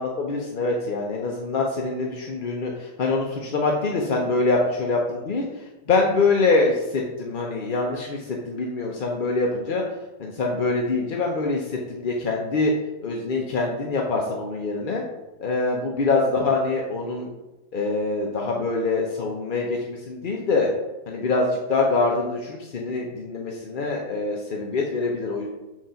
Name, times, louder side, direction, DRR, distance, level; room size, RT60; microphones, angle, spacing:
voice 1, 0.0-5.0 5.3-9.8 10.2-12.7 13.0-15.0 15.4-17.3 17.7-20.7 21.1-25.5, left 3 dB, 45° left, 0 dB, 0.7 m, -24 dB
7.5 x 3.8 x 5.7 m, 1.1 s
omnidirectional pair, 1.5 m